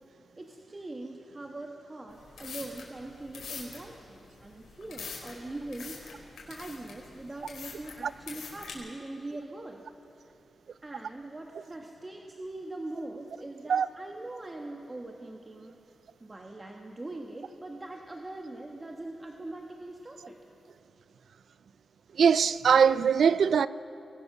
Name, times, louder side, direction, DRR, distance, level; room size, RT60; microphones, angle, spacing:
voice 1, 0.4-9.9 10.8-15.8 16.2-20.4, right 2 dB, 25° right, 1.7 m, -42 dB
sound 1, 2.1-8.7, left 5 dB, 85° left, 4.8 m, -44 dB
voice 2, 22.2-23.7, right 7 dB, 75° right, 0.5 m, -21 dB
24.0 x 20.5 x 6.3 m
cardioid pair, 70°, 0 cm